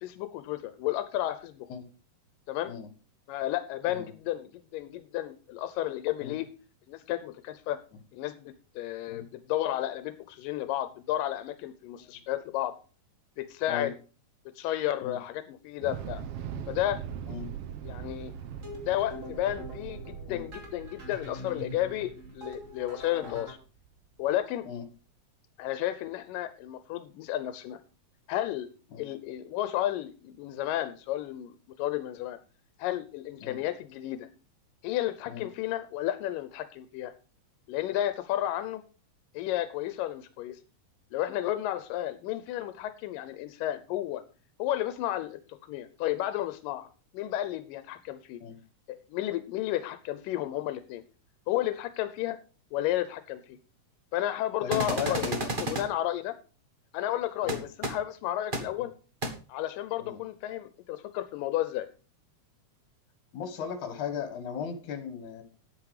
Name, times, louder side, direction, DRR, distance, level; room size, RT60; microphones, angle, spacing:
voice 1, 0.0-1.7 2.5-2.7 3.3-6.5 6.9-7.8 8.1-12.7 13.4-13.9 14.5-16.2 16.7-17.0 17.8-18.3 18.8-23.6 24.2-24.7 25.6-27.8 28.3-28.7 29.0-32.4 32.8-34.3 34.8-37.1 37.7-38.8 39.3-40.6 41.1-44.2 44.6-48.4 48.9-51.0 51.5-52.4 52.7-53.6 54.1-55.3 55.6-56.4 56.9-58.9 59.5-61.9, left 13 dB, 90° left, 11 dB, 2.4 m, -32 dB
Thunder / Explosion, 15.8-24.0, right 9 dB, 80° right, 1.3 m, -41 dB
sound 1, 18.3-23.5, left 1 dB, 25° right, 2.8 m, -44 dB
voice 2, 54.6-55.4 57.4-57.6 58.8-58.9 60.0-60.2 63.3-65.4, left 7 dB, 65° left, 9 dB, 3.0 m, -37 dB
sound 2, 54.7-55.8 57.5-57.6 57.8-57.9 58.5-58.6 59.2-59.3, right 1 dB, 55° right, 0.5 m, -31 dB
9.8 x 8.7 x 4.9 m, 0.36 s
omnidirectional pair, 3.8 m